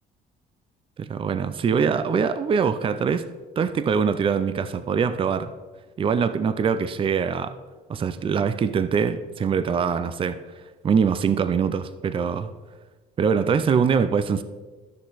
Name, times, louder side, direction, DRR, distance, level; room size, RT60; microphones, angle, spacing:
voice 1, 1.0-3.3 3.6-5.5 6.0-7.5 7.9-10.4 10.8-12.5 13.2-14.4, right 6 dB, 30° right, 12 dB, 0.5 m, -23 dB
13.5 x 6.2 x 4.0 m, 1.3 s
cardioid pair, 110°, 17 cm